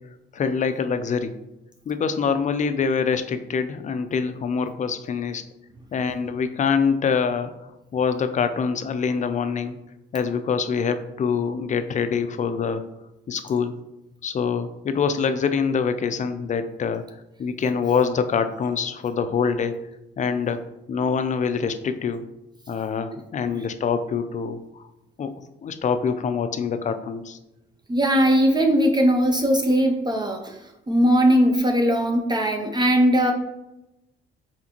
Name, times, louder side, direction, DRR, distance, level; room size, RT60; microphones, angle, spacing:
voice 1, 0.3-1.3 1.9-5.4 5.9-7.5 7.9-9.8 10.1-12.8 13.3-13.7 14.2-17.0 17.4-19.7 20.2-20.6 20.9-22.2 22.7-24.9 25.2-25.3 25.6-27.4, left 6 dB, 40° left, 10 dB, 0.4 m, -25 dB
voice 2, 27.9-33.3, equal, 20° right, 3 dB, 0.5 m, -20 dB
4.2 x 3.8 x 2.9 m, 0.92 s
cardioid pair, 90°, 20 cm